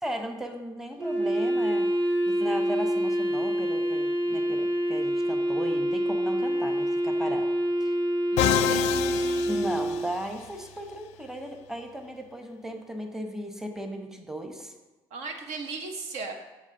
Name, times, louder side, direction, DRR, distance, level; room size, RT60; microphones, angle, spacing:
voice 1, 0.0-7.5 7.8-7.9 9.5-14.7, equal, 5° right, 5 dB, 0.9 m, -36 dB
Wind instrument woodwind instrument, 1.0-10.2, equal, 40° right, 1.4 m, -26 dB
voice 2, 8.3-9.2 15.1-16.3, right 4 dB, 70° right, 4 dB, 0.8 m, -37 dB
Musical instrument, 8.4-10.5, left 11 dB, 75° left, 0.4 m, -28 dB
9.0 x 3.6 x 3.8 m, 1.2 s
hypercardioid pair, 65°, 12 cm